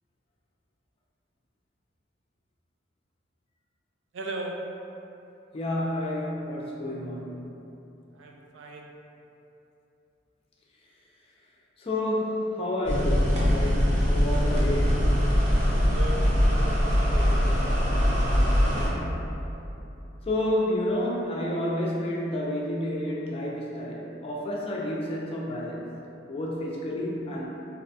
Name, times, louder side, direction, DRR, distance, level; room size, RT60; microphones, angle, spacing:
voice 1, 4.1-4.8 8.1-8.9 15.7-17.5, right 1 dB, 70° right, 1 dB, 0.3 m, -37 dB
voice 2, 5.5-7.4 11.8-15.1 18.6-19.5 20.3-25.8 26.3-27.5, left 1 dB, 30° left, -3 dB, 0.4 m, -30 dB
sound 1, 12.8-18.9, equal, 40° right, 0.7 m, -22 dB
4.1 x 2.1 x 2.7 m, 2.9 s
head